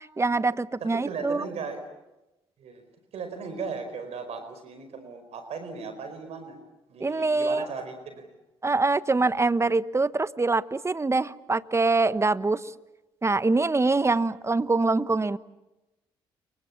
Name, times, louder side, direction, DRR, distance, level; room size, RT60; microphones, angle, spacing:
voice 1, 0.0-1.4 7.0-7.7 8.6-12.7 13.2-15.4, right 3 dB, 25° right, 16 dB, 1.2 m, -24 dB
voice 2, 0.8-1.8 2.6-2.8 3.1-6.6 6.9-8.3, right 5 dB, 60° right, 8 dB, 4.7 m, -37 dB
29.5 x 24.5 x 7.1 m, 0.98 s
hypercardioid pair, 50°, 12 cm